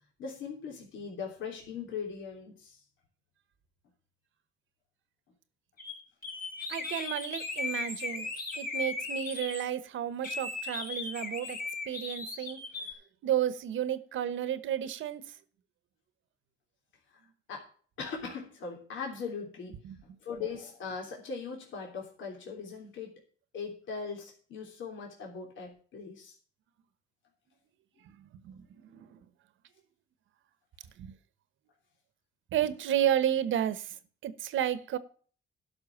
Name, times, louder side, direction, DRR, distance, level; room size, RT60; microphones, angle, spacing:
voice 1, 0.2-2.8 13.9-14.0 17.5-17.7 18.0-23.1 23.5-26.4, left 5 dB, 75° left, 1 dB, 3.2 m, -40 dB
sound 1, 5.8-6.0 6.2-9.6 10.2-12.9, left 3 dB, 45° left, 4.1 m, -37 dB
voice 2, 6.7-8.3 8.5-11.6 11.9-12.6 13.2-15.2 19.8-19.9 28.4-29.2 31.0-31.1 32.5-35.0, right 10 dB, 80° right, 15 dB, 1.2 m, -32 dB
12.0 x 6.2 x 7.2 m, 0.43 s
cardioid pair, 90°, 20 cm